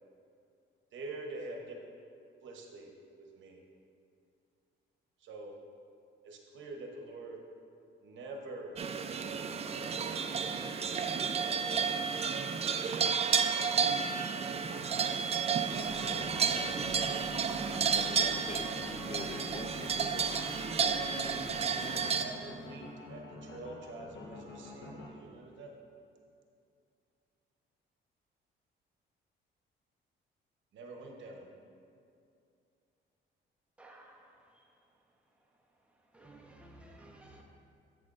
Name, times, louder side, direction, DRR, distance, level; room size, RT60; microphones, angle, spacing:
voice 1, 0.9-1.7 2.4-2.9 3.2-3.6 5.2-5.5 6.2-7.4 8.0-8.7 9.1-10.5 11.4-12.0 13.4-14.1 15.5-17.2 18.1-18.2 21.6-25.7 30.7-31.5, right 2 dB, 70° right, 1 dB, 0.9 m, -47 dB
sound 1, 8.8-22.2, right 6 dB, 30° right, 0.4 m, -32 dB
sound 2, 15.7-25.1, left 2 dB, 65° left, 1.1 m, -45 dB
voice 2, 17.6-20.3, left 4 dB, 35° left, 6 dB, 0.4 m, -46 dB
voice 3, 33.8-34.2 36.1-37.4, right 1 dB, 5° right, -1 dB, 0.9 m, -54 dB
8.7 x 6.1 x 2.5 m, 2.5 s
cardioid pair, 90°, 20 cm